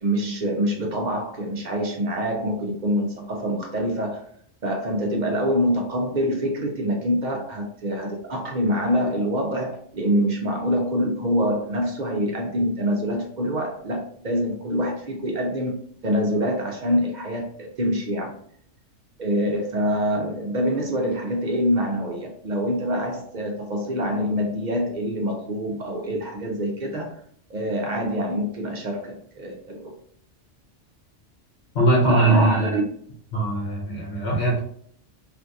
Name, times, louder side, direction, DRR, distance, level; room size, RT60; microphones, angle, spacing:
voice 1, 0.0-4.2 4.6-15.8 16.0-18.4 19.2-27.2 27.5-29.9 32.0-32.8, equal, 55° right, 1 dB, 0.5 m, -25 dB
voice 2, 31.7-32.6 33.3-34.6, right 2 dB, 65° left, -3 dB, 1.0 m, -21 dB
2.7 x 2.5 x 3.4 m, 0.62 s
omnidirectional pair, 1.3 m